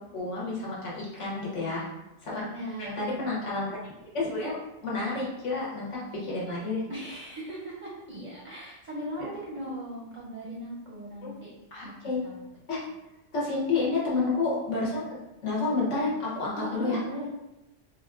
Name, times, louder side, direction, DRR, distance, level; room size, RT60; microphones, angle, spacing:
voice 1, 0.1-1.9 2.2-2.4 2.8-3.8 4.1-6.8 9.2-9.3 11.2-11.3 11.7-12.2 12.7-12.8 13.3-15.2 15.4-17.0, left 3 dB, 80° left, -5 dB, 1.3 m, -30 dB
voice 2, 2.3-3.3 6.9-11.5 11.8-11.9 12.2-12.5 14.3-14.4 16.5-17.3, right 1 dB, 50° right, -4 dB, 0.6 m, -38 dB
3.5 x 2.3 x 2.4 m, 0.95 s
omnidirectional pair, 1.2 m